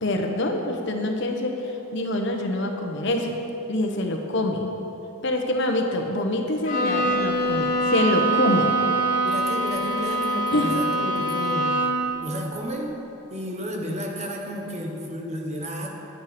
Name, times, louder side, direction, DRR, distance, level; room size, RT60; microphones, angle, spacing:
voice 1, 0.0-3.4 3.7-4.7 5.2-8.7 10.5-10.7, left 1 dB, 60° left, 3 dB, 1.0 m, -25 dB
Bowed string instrument, 6.6-12.2, right 2 dB, 40° left, 1.6 m, -24 dB
voice 2, 9.2-11.8 12.2-13.0 13.3-15.9, equal, 35° right, 0 dB, 1.3 m, -32 dB
10.0 x 8.5 x 5.1 m, 3.0 s
head